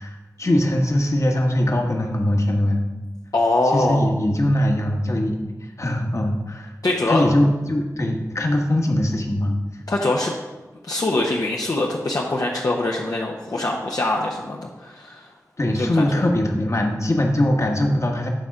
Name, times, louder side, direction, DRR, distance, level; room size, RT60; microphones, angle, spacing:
voice 1, 0.0-2.8 3.6-5.4 5.8-6.7 7.1-9.6 15.6-18.3, left 1 dB, 50° left, 1 dB, 1.3 m, -21 dB
voice 2, 3.3-4.1 6.8-7.2 9.9-10.3 10.9-15.3 15.8-16.0, left 2 dB, 70° left, -2 dB, 0.9 m, -23 dB
9.0 x 3.7 x 5.9 m, 1.1 s
cardioid pair, 40°, 6 cm